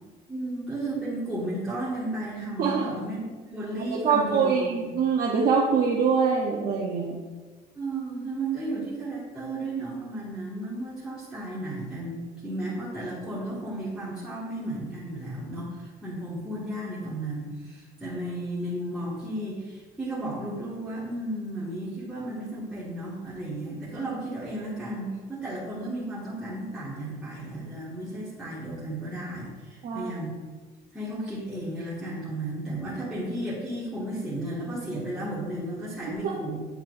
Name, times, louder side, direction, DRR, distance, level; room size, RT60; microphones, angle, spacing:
voice 1, 0.3-4.9 7.7-30.4 30.9-36.6, right 1 dB, 5° right, -10 dB, 1.6 m, -34 dB
voice 2, 2.6-3.0 3.9-7.2 29.8-30.1 36.2-36.3, right 5 dB, 60° right, -2 dB, 0.8 m, -24 dB
8.9 x 4.4 x 2.5 m, 1.4 s
cardioid pair, 110°, 17 cm